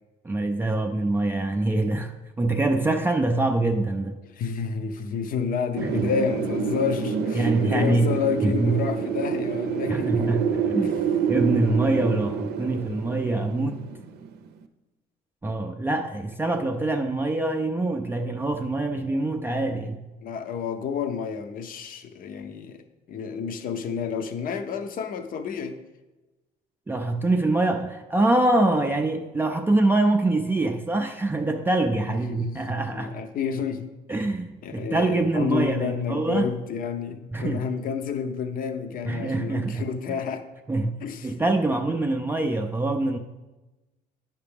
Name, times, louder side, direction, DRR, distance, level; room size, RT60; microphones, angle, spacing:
voice 1, 0.2-4.2 5.8-6.1 7.3-8.1 8.4-8.8 9.9-10.9 11.3-13.8 15.4-20.0 26.9-33.1 34.1-36.5 37.3-37.6 39.0-39.9 40.7-43.2, right 2 dB, 10° right, 4 dB, 0.4 m, -24 dB
voice 2, 4.3-10.3 10.8-10.9 20.2-22.8 23.1-25.8 32.1-33.9 34.6-40.5 41.0-41.3, left 6 dB, 55° left, 9 dB, 0.7 m, -30 dB
Wind, 5.8-14.5, right 7 dB, 70° right, 0.6 m, -28 dB
9.5 x 5.8 x 3.4 m, 1.1 s
cardioid pair, 110°, 17 cm